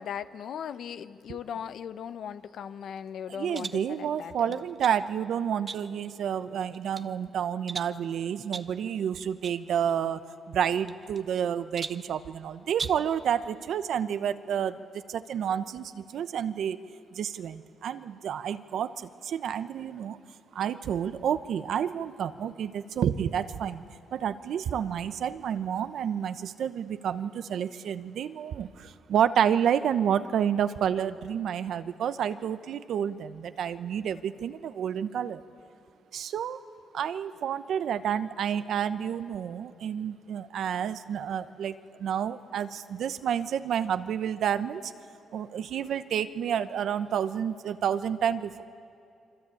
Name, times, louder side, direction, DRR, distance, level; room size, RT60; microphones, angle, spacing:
voice 1, 0.0-4.7, left 8 dB, 75° left, 0.8 m, -38 dB
voice 2, 3.3-10.2 10.5-16.8 17.1-20.2 20.5-23.8 24.1-35.4 36.1-36.6 36.9-44.9 45.3-48.6, right 8 dB, 75° right, 1.0 m, -30 dB
sound 1, 3.5-3.9 4.5-5.0 5.7-6.1 6.6-7.1 7.7-8.0 8.5-8.8 9.4-9.6 9.9-10.0 10.9-11.4 11.8-12.1 12.7-13.1, right 5 dB, 45° right, 0.9 m, -39 dB
27.5 x 24.5 x 8.7 m
cardioid pair, 80°, 0 cm